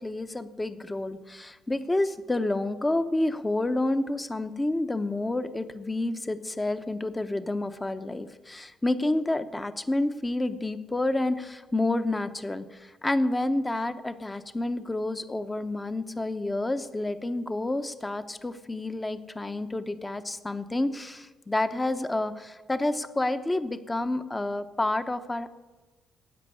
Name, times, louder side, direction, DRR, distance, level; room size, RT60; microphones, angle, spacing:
voice 1, 0.0-25.5, left 2 dB, 15° left, 10 dB, 0.9 m, -29 dB
15.5 x 5.2 x 9.6 m, 1.2 s
cardioid pair, 90°, 0 cm